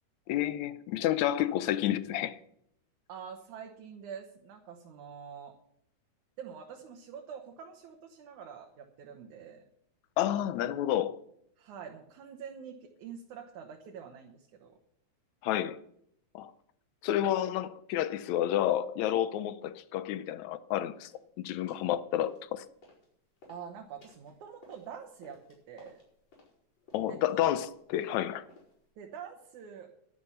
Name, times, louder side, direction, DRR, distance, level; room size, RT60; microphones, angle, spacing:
voice 1, 0.3-2.4 10.2-11.2 15.4-15.8 16.4-16.5 17.0-21.1 21.4-22.7 26.9-28.5, left 12 dB, 80° left, 2.0 m, -30 dB
voice 2, 3.1-5.6 6.4-9.6 11.6-14.7 23.5-26.0 27.1-27.2 29.0-29.9, right 7 dB, 90° right, 2.7 m, -46 dB
sound 1, 21.0-21.2 21.7-21.9 22.2-23.1 23.4-28.9, left 2 dB, 65° left, 6.1 m, -59 dB
11.5 x 11.0 x 5.7 m
omnidirectional pair, 3.3 m